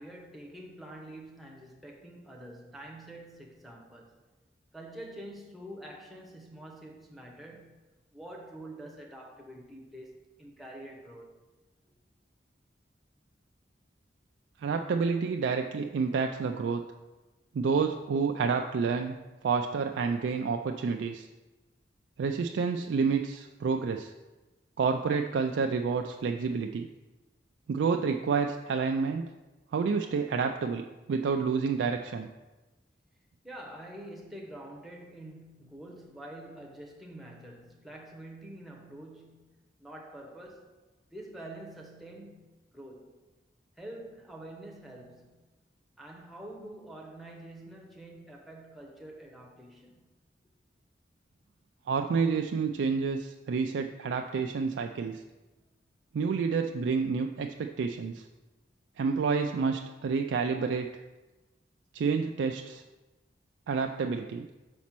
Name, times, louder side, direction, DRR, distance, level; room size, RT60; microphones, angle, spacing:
voice 1, 0.0-4.2 4.7-7.8 8.1-11.3 33.4-40.7 41.1-43.2 43.8-45.5 46.0-50.1, right 1 dB, ahead, 0.8 m, -46 dB
voice 2, 14.6-16.9 17.5-19.2 19.4-21.3 22.2-24.1 24.8-26.9 27.7-29.3 29.7-32.3 51.9-55.2 56.1-58.2 59.0-60.9 61.9-62.8 63.7-64.5, right 5 dB, 85° right, 0.3 m, -29 dB
5.1 x 4.2 x 5.9 m
head